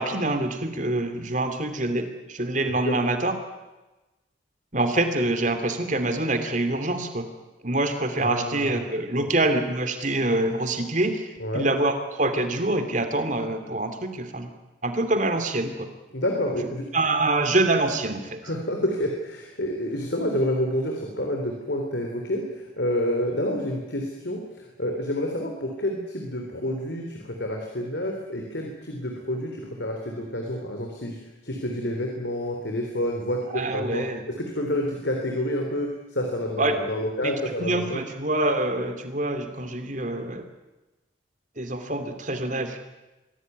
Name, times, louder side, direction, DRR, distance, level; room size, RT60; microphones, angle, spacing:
voice 1, 0.0-3.3 4.7-7.3 7.6-14.5 14.8-15.9 16.9-18.4 33.5-34.2 36.6-36.7 37.2-37.3 37.6-40.4 41.6-42.8, right 2 dB, 40° right, 7 dB, 2.8 m, -25 dB
voice 2, 2.6-3.0 8.2-8.8 11.4-11.7 16.1-16.8 18.4-38.0, left 1 dB, 65° left, 2 dB, 3.6 m, -29 dB
24.5 x 17.0 x 9.5 m, 1.1 s
head